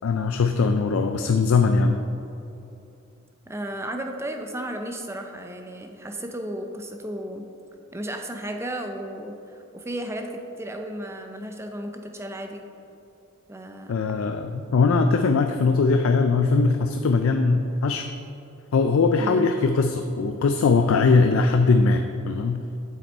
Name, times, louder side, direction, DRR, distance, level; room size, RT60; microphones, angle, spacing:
voice 1, 0.0-2.0 13.9-18.1 18.7-22.7, left 4 dB, 75° left, 6 dB, 0.4 m, -21 dB
voice 2, 3.5-7.5 7.9-12.6 13.5-14.0 19.2-19.5, right 1 dB, 15° right, 4 dB, 0.5 m, -34 dB
7.9 x 6.5 x 4.3 m, 2.7 s
head